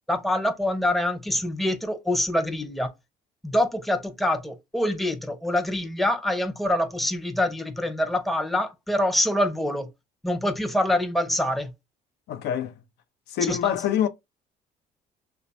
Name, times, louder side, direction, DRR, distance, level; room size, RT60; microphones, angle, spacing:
voice 1, 0.1-2.9 3.4-9.9 10.2-11.7 13.4-13.8, left 1 dB, ahead, 0.5 m, -25 dB
voice 2, 12.3-12.7 13.3-14.1, left 9 dB, 80° left, 0.6 m, -25 dB
3.3 x 2.2 x 3.9 m
cardioid pair, 110°, 17 cm